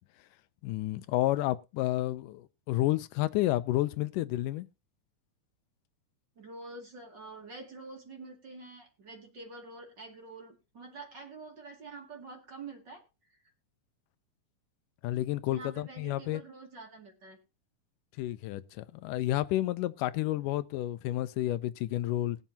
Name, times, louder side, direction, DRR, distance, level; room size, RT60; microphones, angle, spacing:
voice 1, 0.6-4.7 15.0-16.4 18.2-22.4, left 15 dB, 85° left, 2.2 m, -30 dB
voice 2, 6.4-13.0 15.5-17.4 20.4-20.5, right 3 dB, 35° right, 2.6 m, -47 dB
20.5 x 7.4 x 2.8 m
omnidirectional pair, 3.6 m